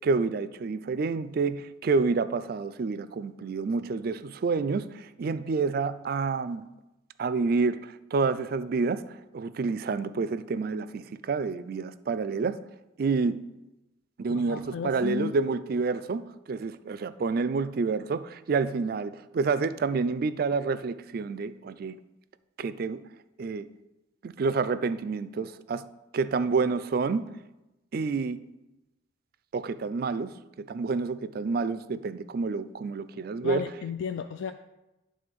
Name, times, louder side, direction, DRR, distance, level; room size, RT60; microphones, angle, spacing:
voice 1, 0.0-6.6 7.2-12.6 13.0-13.4 14.2-22.0 22.6-23.0 23.4-23.7 24.2-25.9 26.1-27.3 27.9-28.4 29.5-33.6, right 4 dB, 50° right, 0.3 m, -28 dB
voice 2, 14.3-15.4 33.4-34.5, left 6 dB, 75° left, 0.4 m, -34 dB
10.5 x 3.8 x 5.2 m
head